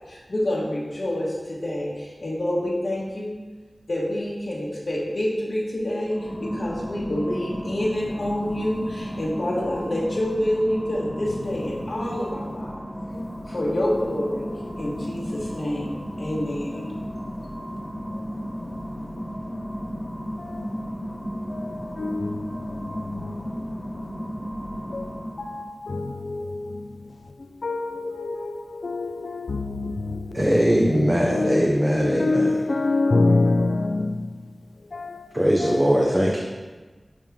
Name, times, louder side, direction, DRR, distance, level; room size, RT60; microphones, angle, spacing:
voice 1, 0.0-3.4 3.9-12.7 13.5-14.4 14.8-16.8, left 1 dB, 65° left, 1.3 m, -27 dB
sound 1, 6.0-25.7, equal, 20° left, 1.2 m, -34 dB
voice 2, 22.0-22.3 24.9-25.0 25.9-26.4 27.6-28.5 28.8-29.9 30.9-31.7 31.9-34.1 35.0-35.1 35.6-35.9, left 3 dB, 80° left, 0.4 m, -24 dB
voice 3, 30.3-32.5 35.3-36.4, equal, 15° right, 0.7 m, -20 dB
8.9 x 3.1 x 3.6 m
wide cardioid pair, 45°, 0 cm